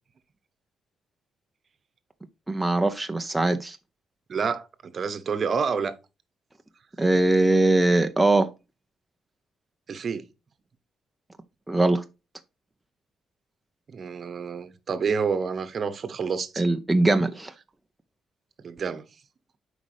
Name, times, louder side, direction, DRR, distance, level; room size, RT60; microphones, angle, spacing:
voice 1, 2.5-3.8 7.0-8.5 11.7-12.0 16.6-17.5, right 2 dB, 10° right, 0.6 m, -21 dB
voice 2, 4.3-5.9 9.9-10.2 13.9-16.6 18.6-19.0, right 5 dB, 45° right, 1.0 m, -28 dB
7.9 x 5.1 x 3.3 m
cardioid pair, 90°, 0 cm